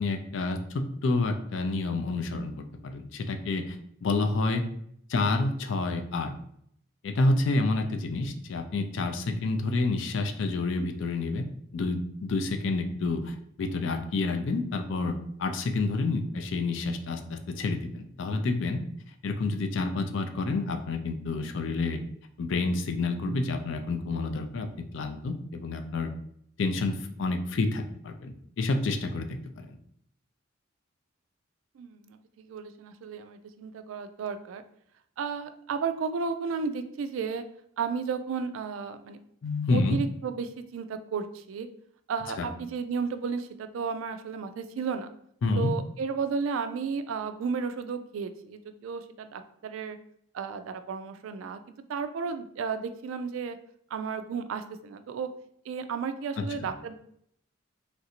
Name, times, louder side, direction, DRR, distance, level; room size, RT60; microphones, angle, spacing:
voice 1, 0.0-2.5 2.8-4.6 5.1-6.3 7.0-11.5 11.7-18.8 19.2-22.0 22.4-26.1 26.6-29.8 39.4-40.0 42.4-42.5 45.4-45.7 56.4-56.5, left 3 dB, 65° left, 7 dB, 0.4 m, -29 dB
voice 2, 31.8-34.6 35.2-37.4 37.8-39.2 39.7-41.7 42.1-45.1 45.6-50.0 50.3-51.6 51.9-53.6 53.9-55.3 55.7-56.9, right 5 dB, 80° right, 10 dB, 0.3 m, -33 dB
3.2 x 2.5 x 2.8 m, 0.69 s
head